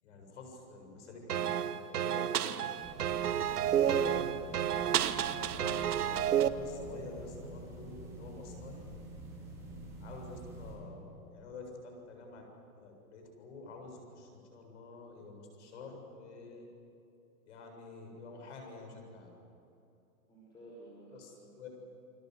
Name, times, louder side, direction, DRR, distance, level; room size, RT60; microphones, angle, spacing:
voice 1, 0.0-2.8 3.8-4.3 5.0-8.9 10.0-12.5 12.8-16.7 17.4-19.3 21.1-21.7, left 3 dB, 50° left, 3 dB, 7.5 m, -49 dB
sound 1, 1.3-6.5, right 10 dB, 85° right, 1.4 m, -30 dB
sound 2, 2.8-10.7, right 2 dB, 5° right, 5.3 m, -47 dB
voice 2, 9.5-9.8 20.3-21.6, right 1 dB, 10° left, -5 dB, 4.9 m, -54 dB
29.5 x 22.5 x 8.0 m, 2.7 s
hypercardioid pair, 170°, 45 cm